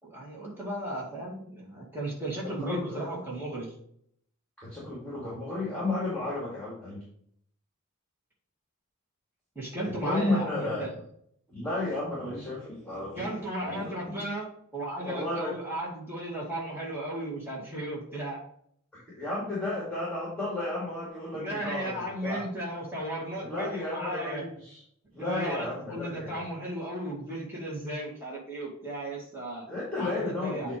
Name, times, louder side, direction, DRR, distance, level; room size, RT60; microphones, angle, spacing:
voice 1, 0.0-3.7 9.6-10.9 13.2-14.5 14.7-18.4 21.3-24.5 25.2-29.7 30.0-30.8, right 1 dB, 10° right, -5 dB, 2.1 m, -35 dB
voice 2, 2.4-3.0 4.6-7.0 9.8-10.9 11.5-13.3 13.6-14.2 15.0-15.5 19.1-22.4 23.4-24.8 25.1-26.4 29.7-30.8, left 2 dB, 5° left, -7 dB, 2.1 m, -33 dB
8.0 x 3.0 x 5.1 m, 0.68 s
head